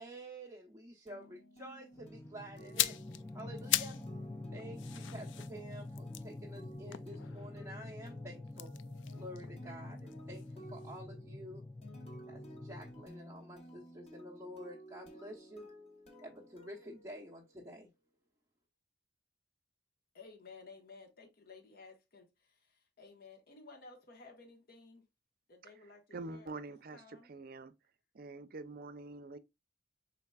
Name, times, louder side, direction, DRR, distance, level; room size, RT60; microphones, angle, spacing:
voice 1, 0.0-2.9 3.3-3.9 4.5-8.7 9.1-11.6 12.3-15.7 16.2-17.9, right 1 dB, 15° right, 0.9 m, -49 dB
sound 1, 1.1-17.7, right 1 dB, 35° left, 1.3 m, -55 dB
sound 2, 1.9-13.0, left 2 dB, 15° left, 0.4 m, -47 dB
sound 3, 2.6-4.1 4.4-7.7 8.5-10.5 10.8-11.0, left 13 dB, 85° left, 0.4 m, -38 dB
voice 2, 20.1-25.1 25.5-26.0 26.3-26.5 26.9-27.3, left 4 dB, 55° left, 1.2 m, -55 dB
voice 3, 25.6-27.7 28.1-29.4, right 3 dB, 55° right, 0.6 m, -46 dB
5.6 x 4.1 x 2.3 m
head